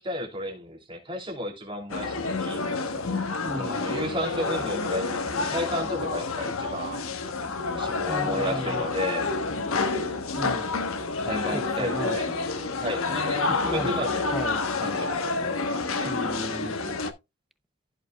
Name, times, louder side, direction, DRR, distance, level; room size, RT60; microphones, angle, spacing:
voice 1, 0.0-2.6 3.6-7.0 7.7-9.3 11.2-14.3 14.7-15.4 15.7-16.1, equal, 25° right, 2.9 m, -33 dB
sound 1, 1.9-17.1, left 3 dB, 85° left, 1.1 m, -28 dB
voice 2, 3.4-3.8 8.1-8.9 10.4-10.7 11.5-12.2 13.4-13.9 14.3-14.6 16.0-17.0, equal, ahead, 0.6 m, -35 dB
15.0 x 5.2 x 2.3 m
head